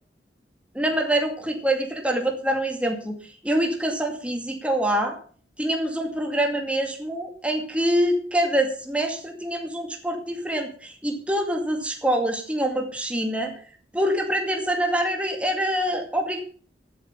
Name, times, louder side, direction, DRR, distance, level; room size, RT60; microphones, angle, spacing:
voice 1, 0.7-5.2 5.6-13.5 13.9-16.4, right 1 dB, 5° right, 2 dB, 2.3 m, -25 dB
14.0 x 7.9 x 5.8 m, 0.43 s
head